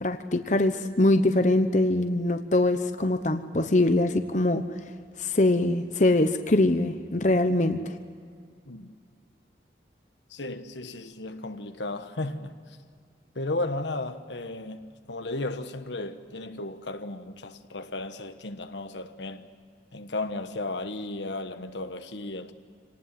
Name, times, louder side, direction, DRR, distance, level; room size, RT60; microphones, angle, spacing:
voice 1, 0.0-4.6 5.2-7.9, left 2 dB, 40° left, 0.9 m, -23 dB
voice 2, 10.3-12.6 13.3-19.5 19.9-22.5, left 2 dB, 80° left, 1.3 m, -34 dB
27.0 x 19.0 x 7.7 m
head